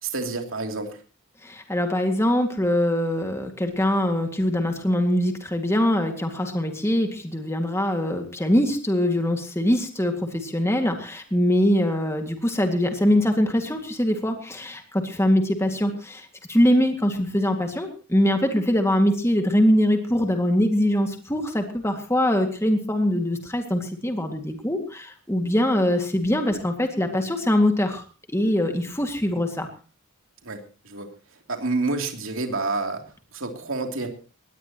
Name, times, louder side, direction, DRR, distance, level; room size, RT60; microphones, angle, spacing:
voice 1, 0.0-1.0 30.4-31.1 31.5-34.1, right 3 dB, 60° right, 4 dB, 3.0 m, -29 dB
voice 2, 1.4-28.0 28.3-29.7, left 1 dB, 10° left, 5 dB, 2.1 m, -23 dB
20.5 x 18.0 x 3.0 m, 0.35 s
head